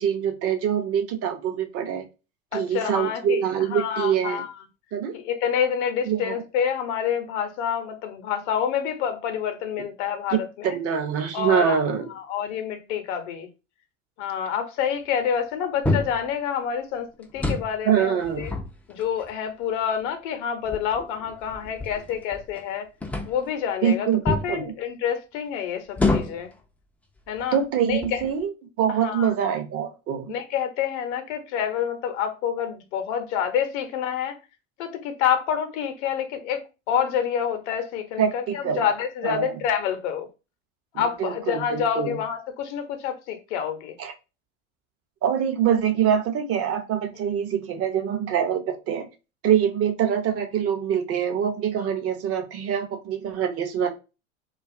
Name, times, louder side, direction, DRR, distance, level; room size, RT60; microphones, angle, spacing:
voice 1, 0.0-2.0 2.5-4.4 4.9-5.1 6.1-6.3 10.6-12.1 17.9-18.4 23.8-24.7 27.5-28.5 28.8-30.3 38.2-38.8 39.2-39.5 40.9-42.2 44.0-44.1 45.2-49.1 49.4-54.0, right 8 dB, 35° right, 0.6 m, -24 dB
voice 2, 2.5-3.4 3.7-4.5 5.1-10.8 11.3-11.8 12.1-13.5 14.2-18.5 18.9-22.9 23.3-26.5 27.3-27.6 27.9-28.2 29.0-29.3 30.3-34.4 34.8-40.3 40.9-43.9, left 8 dB, 60° left, 0.7 m, -27 dB
sound 1, 15.8-16.3 17.2-17.8 18.2-19.3 20.0-20.1 20.6-22.6 23.0-23.5 24.3-24.5 25.9-26.5 27.3-27.4 27.9-28.4, left 2 dB, 5° left, 0.3 m, -28 dB
2.5 x 2.3 x 2.4 m
hypercardioid pair, 90°, 39 cm